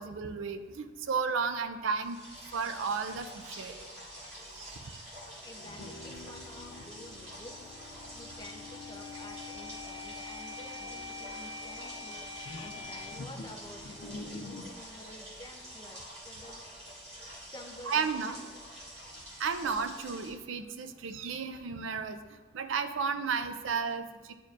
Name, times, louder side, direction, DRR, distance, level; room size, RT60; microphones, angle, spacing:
voice 1, 0.0-2.2 2.5-3.8 4.6-4.8 17.9-18.4 19.4-22.2 22.5-24.3, right 5 dB, 80° right, 9 dB, 0.5 m, -33 dB
sound 1, 1.9-20.3, equal, 30° right, 1.7 m, -47 dB
voice 2, 5.4-7.8 8.1-12.3 12.6-16.7 17.5-18.4, left 1 dB, 20° left, 3 dB, 0.4 m, -50 dB
sound 2, 5.6-14.7, left 3 dB, 85° left, 0.5 m, -45 dB
10.5 x 4.5 x 2.4 m, 1.4 s
head